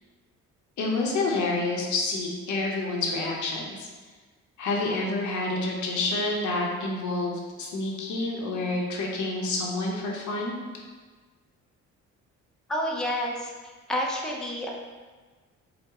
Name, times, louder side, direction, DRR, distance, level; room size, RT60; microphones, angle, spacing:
voice 1, 0.8-3.9 4.6-10.6, left 2 dB, 75° left, -1 dB, 0.8 m, -28 dB
voice 2, 12.7-13.5 13.9-14.7, equal, ahead, -2 dB, 0.5 m, -29 dB
4.6 x 2.1 x 3.5 m, 1.4 s
cardioid pair, 90°, 30 cm